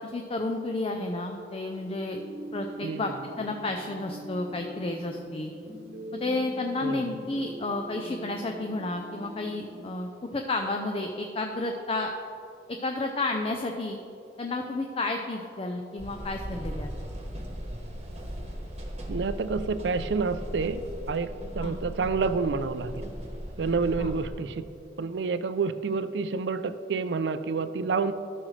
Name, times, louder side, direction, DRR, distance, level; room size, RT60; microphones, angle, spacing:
voice 1, 0.0-2.2 2.5-3.1 3.4-5.5 6.2-12.1 12.7-14.0 14.4-16.9 21.6-21.7 24.0-24.1, left 2 dB, 35° left, 4 dB, 0.5 m, -31 dB
sound 1, 1.7-9.9, right 1 dB, 60° right, 1.1 m, -42 dB
voice 2, 6.8-7.1 19.1-23.1 23.6-24.6 25.0-28.1, right 4 dB, 80° right, 13 dB, 0.4 m, -29 dB
sound 2, 16.0-24.3, equal, 35° right, 1.2 m, -38 dB
13.0 x 6.3 x 3.2 m, 2.6 s
head